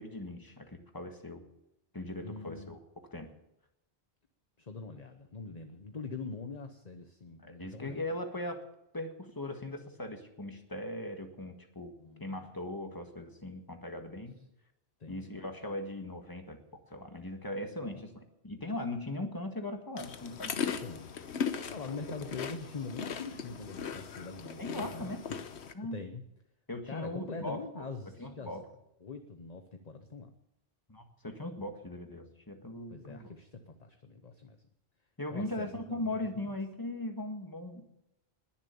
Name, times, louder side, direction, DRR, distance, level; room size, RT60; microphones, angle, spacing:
voice 1, 0.0-1.4 1.9-2.8 3.1-3.3 7.4-8.6 8.9-11.9 12.2-14.4 15.1-16.6 16.9-20.8 24.6-25.2 25.7-26.0 26.7-27.9 28.2-28.6 30.9-33.3 35.2-37.8, left 1 dB, 20° left, 4 dB, 1.7 m, -39 dB
voice 2, 2.2-2.7 4.6-8.1 12.0-12.5 15.0-15.3 17.8-18.0 20.8-21.2 21.7-25.4 25.9-26.2 26.9-28.6 29.0-30.3 32.9-34.6 35.3-36.6, left 4 dB, 40° left, 7 dB, 1.0 m, -43 dB
sound 1, 20.0-25.7, left 7 dB, 85° left, 1.2 m, -38 dB
20.5 x 7.4 x 7.0 m, 0.84 s
omnidirectional pair, 1.1 m